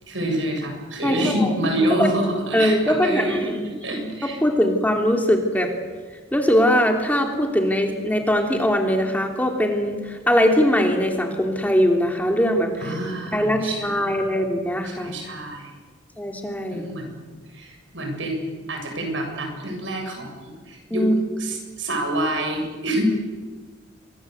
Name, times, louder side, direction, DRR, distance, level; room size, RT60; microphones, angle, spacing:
voice 1, 0.1-4.4 12.8-14.1 14.8-15.7 16.7-17.2 17.5-21.1 21.4-23.0, right 1 dB, 80° right, 3 dB, 7.6 m, -27 dB
voice 2, 1.0-1.5 2.0-2.1 2.5-4.1 4.4-5.7 6.3-12.9 13.3-15.2 16.2-16.8 20.9-21.1, equal, 10° left, 3 dB, 2.9 m, -21 dB
28.0 x 24.5 x 8.0 m, 1.4 s
head